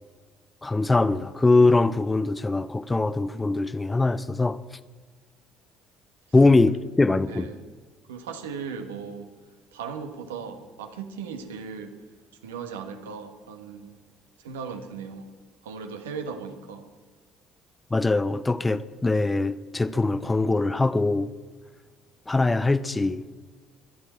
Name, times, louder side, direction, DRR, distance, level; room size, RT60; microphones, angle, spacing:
voice 1, 0.6-4.6 6.3-7.5 17.9-21.3 22.3-23.2, left 3 dB, 20° left, 0.7 m, -22 dB
voice 2, 7.3-7.6 8.1-9.3 9.7-11.9 12.4-14.0 14.4-15.3 15.6-16.9, right 6 dB, 80° right, 1.5 m, -37 dB
23.0 x 11.0 x 4.5 m
hypercardioid pair, 55°, 0 cm